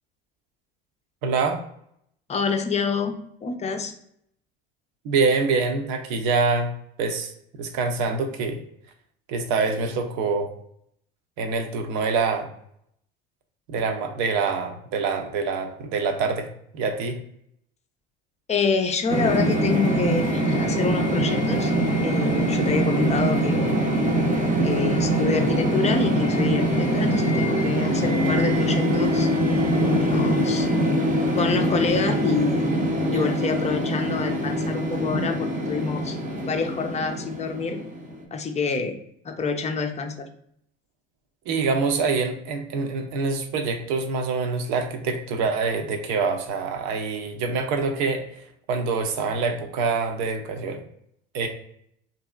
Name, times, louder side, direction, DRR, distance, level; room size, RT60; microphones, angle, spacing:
voice 1, 1.2-1.6 5.0-6.7 7.0-8.6 9.3-10.5 11.4-12.5 13.7-16.5 16.7-17.2 41.5-48.4 48.7-50.8 51.3-51.5, right 4 dB, 60° right, 5 dB, 0.7 m, -25 dB
voice 2, 2.3-3.9 18.5-21.7 22.0-23.8 24.6-30.7 31.4-32.8 33.1-36.2 36.5-37.8 38.3-39.0 39.2-40.3, left 4 dB, 20° left, 5 dB, 0.5 m, -27 dB
sound 1, 19.1-38.2, equal, 25° right, 0.7 m, -23 dB
2.7 x 2.6 x 2.4 m, 0.71 s
hypercardioid pair, 75°, 32 cm